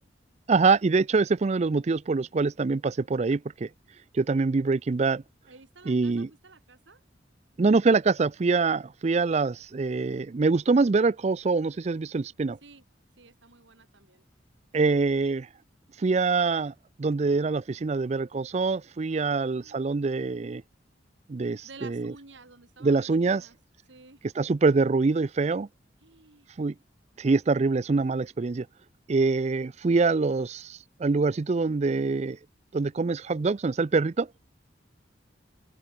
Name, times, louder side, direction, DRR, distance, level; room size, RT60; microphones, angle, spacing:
voice 1, 0.5-3.7 4.1-5.2 5.9-6.3 7.6-12.6 14.7-15.5 16.0-20.6 21.3-22.1 22.8-23.4 24.4-25.7 26.6-26.7 27.2-28.7 29.1-32.4 32.7-34.3, right 4 dB, 35° right, 0.4 m, -24 dB
voice 2, 5.5-7.0 12.6-12.8 13.2-14.2 19.1-20.3 21.6-23.6 23.9-24.2 26.0-26.5, right 3 dB, 85° right, 2.5 m, -52 dB
open air
head